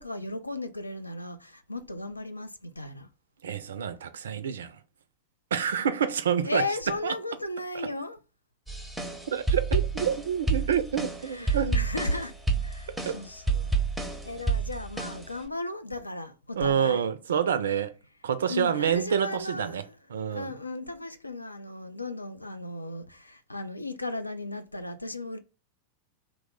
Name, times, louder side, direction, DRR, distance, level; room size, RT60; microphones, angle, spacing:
voice 1, 0.0-3.1 6.4-8.2 11.3-12.3 12.6-17.1 18.5-19.9 20.3-25.4, left 2 dB, 85° left, 0.3 m, -36 dB
voice 2, 3.4-4.8 5.5-6.6 7.0-7.1 7.7-7.9 9.3-11.8 13.0-13.2 16.6-17.9 18.2-19.8 20.1-20.5, right 8 dB, 65° right, 0.3 m, -27 dB
sound 1, 8.7-15.5, right 4 dB, ahead, 0.6 m, -29 dB
3.0 x 2.1 x 3.6 m
figure-of-eight pair, 90°, 0 cm